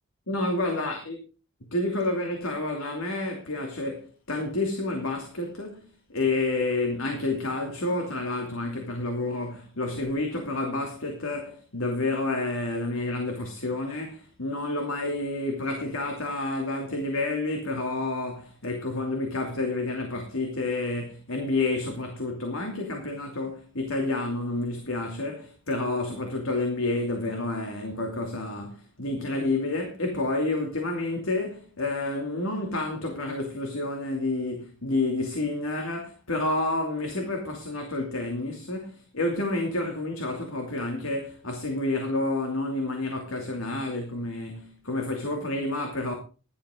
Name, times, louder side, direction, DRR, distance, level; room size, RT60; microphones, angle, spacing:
voice 1, 0.3-1.2 1.7-46.1, left 2 dB, 85° left, 2.8 m, -29 dB
16.5 x 11.5 x 3.8 m
head